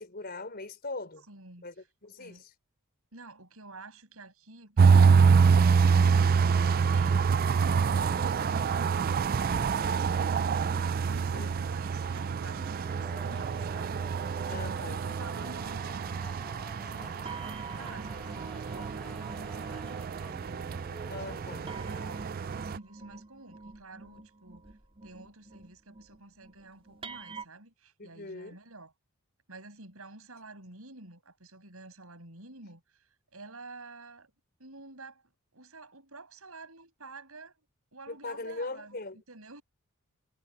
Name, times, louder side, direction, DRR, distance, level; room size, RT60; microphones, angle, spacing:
voice 1, 0.0-1.3 1.6-2.5 11.3-11.5 14.5-15.2 21.1-21.6 28.0-28.6 38.1-39.2, left 3 dB, 45° left, 4.4 m, -40 dB
voice 2, 1.3-1.6 2.2-2.4 3.1-7.2 7.5-24.6 25.0-28.9 29.5-34.3 34.6-35.2 35.5-37.5 37.9-39.0 39.3-39.6, right 2 dB, 70° right, 7.4 m, -49 dB
sound 1, 4.8-22.8, right 5 dB, 40° right, 0.4 m, -26 dB
sound 2, 9.9-14.6 14.9-15.3 15.9-16.5 17.2-20.8 21.7-27.4, right 4 dB, 25° right, 4.5 m, -48 dB
Male singing, 12.4-22.2, equal, 5° left, 1.3 m, -50 dB
head